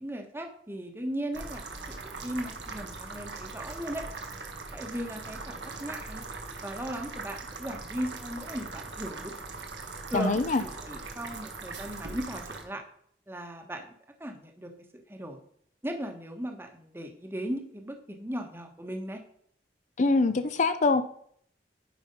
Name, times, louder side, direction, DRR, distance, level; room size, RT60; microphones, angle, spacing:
voice 1, 0.0-4.0 4.7-6.2 6.6-9.3 10.1-10.4 10.9-12.8 13.3-13.9 14.2-14.7 15.1-15.4 15.8-19.2, equal, 15° right, 4 dB, 1.2 m, -37 dB
sound 1, 1.3-12.6, right 3 dB, 90° right, 1.5 m, -40 dB
voice 2, 10.1-10.6 20.0-21.0, left 3 dB, 45° left, 11 dB, 0.6 m, -24 dB
9.4 x 5.2 x 5.3 m, 0.63 s
head